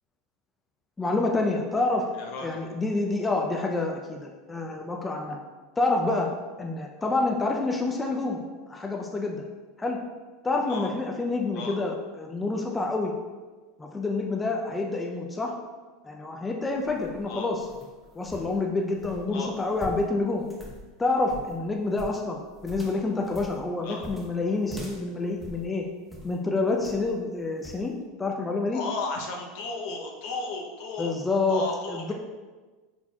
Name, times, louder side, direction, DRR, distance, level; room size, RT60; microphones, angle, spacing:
voice 1, 1.0-2.1 2.4-5.4 5.8-6.3 6.6-9.4 9.8-10.0 10.4-13.1 13.8-15.5 16.0-17.7 18.2-20.4 21.0-25.8 26.2-28.8 31.0-31.6 31.9-32.1, left 3 dB, 15° left, 1 dB, 0.5 m, -28 dB
voice 2, 2.1-2.6 7.0-7.1 10.7-10.9 11.5-11.8 17.3-17.5 19.3-19.5 23.8-24.0 28.7-31.1 31.5-32.1, left 3 dB, 65° left, 1 dB, 0.7 m, -34 dB
sound 1, 16.7-26.4 26.8-27.2 27.6-27.9, left 1 dB, 5° right, 0.8 m, -44 dB
4.3 x 4.1 x 2.3 m, 1.3 s
hypercardioid pair, 90°, 0 cm